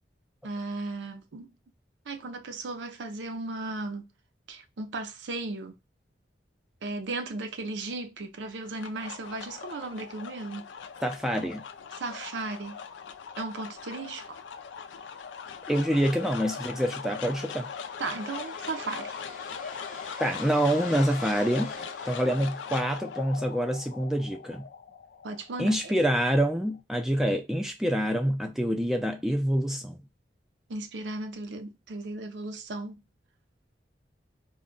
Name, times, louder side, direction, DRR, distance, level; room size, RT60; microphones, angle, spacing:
voice 1, 0.4-1.5 2.1-4.1 4.5-5.7 6.8-10.6 12.0-12.8 13.4-14.4 18.0-19.2 25.2-25.9 30.7-33.0, right 3 dB, 80° right, 0.5 m, -36 dB
sound 1, 8.5-26.8, left 6 dB, 90° left, 0.4 m, -40 dB
voice 2, 11.0-11.6 15.7-17.7 20.2-21.8 22.1-24.7 25.6-30.0, equal, ahead, 0.3 m, -26 dB
sound 2, 16.5-23.2, left 3 dB, 40° left, 0.7 m, -45 dB
2.3 x 2.1 x 3.7 m
head